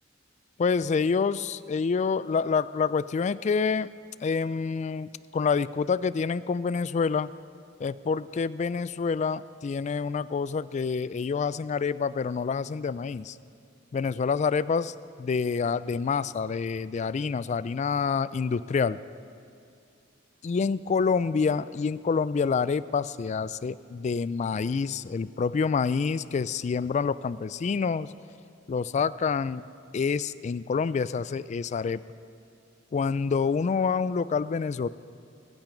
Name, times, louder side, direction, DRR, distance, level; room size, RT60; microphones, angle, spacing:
voice 1, 0.6-3.9 4.2-7.3 7.8-13.4 13.9-19.0 20.4-28.1 28.7-29.6 29.9-32.0 32.9-34.9, left 5 dB, 35° left, 17 dB, 0.3 m, -27 dB
21.0 x 9.1 x 5.1 m, 2.4 s
head